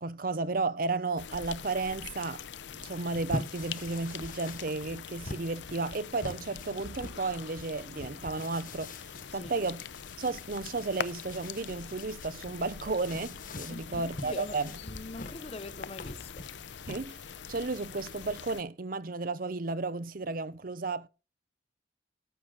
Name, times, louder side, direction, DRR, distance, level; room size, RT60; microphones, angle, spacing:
voice 1, 0.0-2.4 2.7-8.9 9.3-9.8 10.2-14.7 16.9-17.2 17.5-21.1, right 3 dB, 50° right, 0.7 m, -33 dB
sound 1, 1.2-18.6, left 7 dB, 80° left, 0.6 m, -44 dB
sound 2, 2.8-17.0, left 2 dB, 50° left, 1.2 m, -44 dB
voice 2, 13.7-16.5, left 2 dB, 35° left, 0.7 m, -43 dB
11.0 x 7.4 x 3.9 m
head